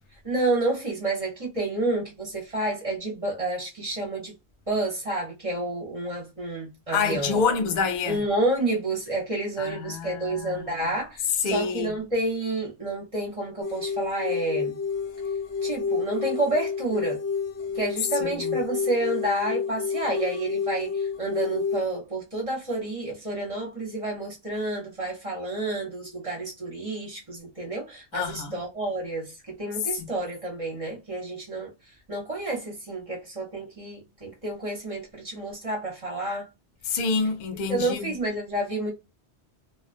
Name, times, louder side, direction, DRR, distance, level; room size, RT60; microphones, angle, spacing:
voice 1, 0.2-4.3 4.7-7.4 8.1-14.8 15.6-17.2 17.7-31.7 32.1-36.5 37.7-38.9, right 2 dB, 35° right, 0.7 m, -29 dB
voice 2, 6.9-8.2 9.6-10.8 11.4-11.9 18.2-18.6 28.1-28.6 30.0-30.1 36.8-38.1, left 5 dB, 55° left, 0.6 m, -27 dB
sound 1, 13.6-21.8, left 6 dB, 85° left, 0.9 m, -30 dB
2.3 x 2.2 x 2.4 m
omnidirectional pair, 1.1 m